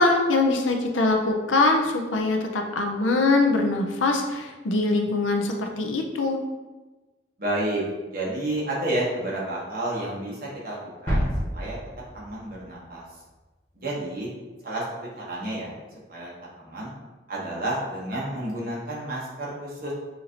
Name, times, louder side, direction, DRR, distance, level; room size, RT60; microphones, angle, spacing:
voice 1, 0.0-6.4, left 2 dB, 90° left, 3 dB, 0.6 m, -23 dB
voice 2, 7.4-11.3 11.5-11.8 12.1-13.0 13.7-14.3 14.6-14.8 15.1-15.7 16.1-16.3 16.6-16.9 17.3-19.9, right 1 dB, 50° right, -5 dB, 1.1 m, -30 dB
sound 1, 11.1-12.9 13.2-13.3, equal, 10° left, 1.1 m, -29 dB
5.7 x 2.6 x 2.9 m, 1.2 s
head